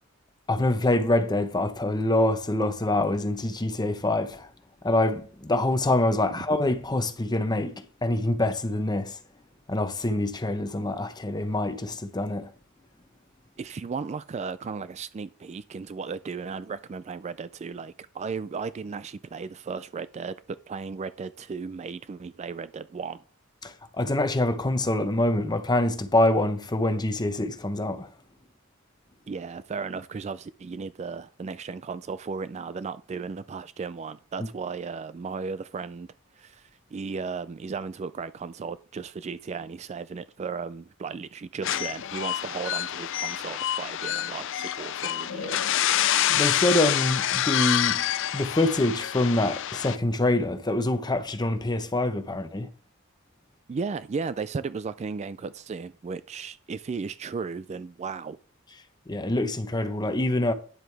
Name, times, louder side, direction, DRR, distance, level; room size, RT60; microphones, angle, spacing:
voice 1, 0.5-4.5 4.8-9.2 9.7-12.5 23.6-28.1 46.3-52.7 59.1-60.5, left 1 dB, 20° left, 0.8 m, -25 dB
voice 2, 13.6-23.2 29.3-36.1 36.4-45.6 53.7-58.4, right 5 dB, 35° right, 0.3 m, -35 dB
sound 1, 41.6-50.0, left 11 dB, 65° left, 0.5 m, -27 dB
9.8 x 7.6 x 3.4 m
head